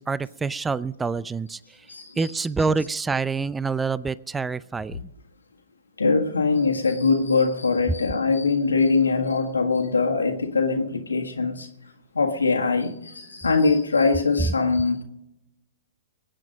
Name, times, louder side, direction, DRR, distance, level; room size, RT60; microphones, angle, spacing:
voice 1, 0.0-1.6 2.2-5.1, right 4 dB, 10° right, 0.4 m, -26 dB
voice 2, 1.9-2.3 6.0-11.7 12.1-15.0, left 4 dB, 90° left, 1.6 m, -22 dB
21.0 x 8.9 x 5.1 m
hypercardioid pair, 115°, 0 cm